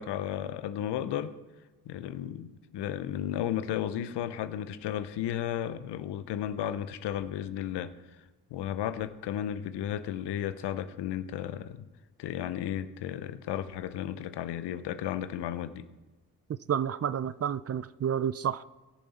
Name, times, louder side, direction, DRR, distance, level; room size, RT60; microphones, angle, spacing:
voice 1, 0.0-1.3 1.9-7.9 8.5-11.9 12.2-15.9, left 10 dB, 75° left, 0.8 m, -34 dB
voice 2, 16.5-18.6, right 9 dB, 35° right, 0.5 m, -30 dB
18.5 x 6.8 x 4.2 m
supercardioid pair, 45°, 41 cm